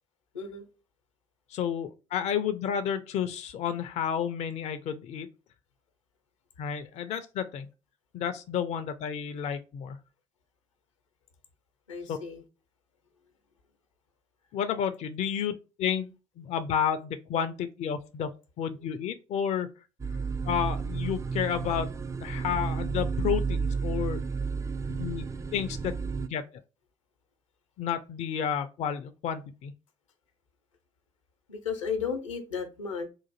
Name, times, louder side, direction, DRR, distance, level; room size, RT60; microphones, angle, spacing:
voice 1, 0.3-0.7 11.9-12.4 31.5-33.1, left 6 dB, 80° left, 0.7 m, -34 dB
voice 2, 1.5-5.3 6.6-7.7 8.1-10.0 12.1-12.2 14.5-19.7 20.4-21.9 22.2-24.2 24.9-25.3 25.5-25.9 26.2-26.4 27.8-29.7, left 8 dB, 45° left, 0.4 m, -31 dB
sound 1, 20.0-26.3, right 5 dB, 20° right, 0.4 m, -31 dB
3.8 x 2.5 x 4.0 m
figure-of-eight pair, 50°, 16 cm